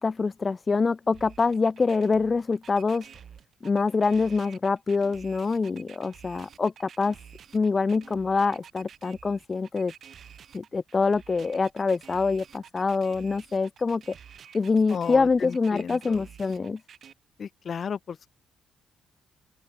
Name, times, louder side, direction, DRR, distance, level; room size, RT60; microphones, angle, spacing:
voice 1, 0.0-3.1 3.6-7.2 7.5-9.9 10.5-14.1 14.5-16.8, left 4 dB, 30° left, 0.5 m, -25 dB
sound 1, 1.1-17.1, right 8 dB, 55° right, 5.5 m, -50 dB
voice 2, 14.9-16.2 17.4-18.2, left 7 dB, 50° left, 1.1 m, -34 dB
open air
cardioid pair, 90°, 0 cm